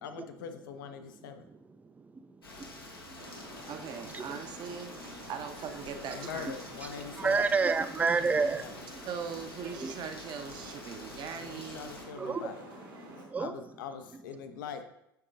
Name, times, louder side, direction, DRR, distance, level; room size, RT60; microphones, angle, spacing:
voice 1, 0.0-1.5 6.1-7.5 8.2-8.7 11.3-12.6 13.4-14.8, left 7 dB, 65° left, 8 dB, 0.6 m, -43 dB
Rain, 2.4-12.0, left 2 dB, 85° left, 1.0 m, -48 dB
voice 2, 2.6-3.2 3.4-3.7 4.1-4.3 7.2-8.8 9.8-9.9 12.2-12.5 13.1-13.5, right 4 dB, 10° right, 12 dB, 0.3 m, -30 dB
sound 1, 3.2-13.2, right 1 dB, 75° right, 1.5 m, -48 dB
voice 3, 3.7-4.9 5.3-6.6 9.0-11.9, right 6 dB, 40° right, 7 dB, 0.7 m, -40 dB
10.0 x 3.7 x 2.5 m, 0.83 s
figure-of-eight pair, 75°, 12 cm